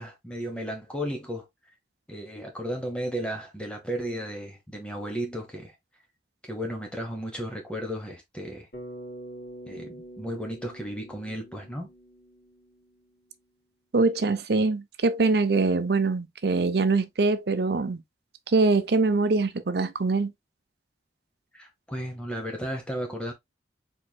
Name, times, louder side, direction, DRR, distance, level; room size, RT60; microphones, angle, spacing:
voice 1, 0.0-1.5 2.1-5.7 6.4-8.7 9.7-11.9 21.5-23.3, equal, 5° left, 1.0 m, -34 dB
Bass guitar, 8.7-13.1, right 1 dB, 75° left, 3.2 m, -45 dB
voice 2, 13.9-18.0 18.5-20.3, right 3 dB, 65° right, 0.6 m, -23 dB
4.7 x 4.3 x 2.3 m
head